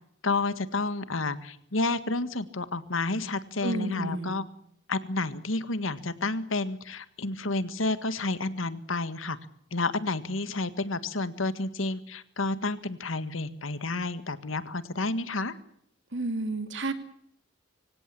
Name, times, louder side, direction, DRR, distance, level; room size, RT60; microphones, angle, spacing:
voice 1, 0.2-4.4 4.9-9.4 9.7-15.5, left 3 dB, 90° left, 13 dB, 1.7 m, -30 dB
voice 2, 3.6-4.4 16.1-16.9, right 2 dB, 65° right, 9 dB, 2.7 m, -31 dB
25.0 x 17.0 x 8.5 m, 0.71 s
head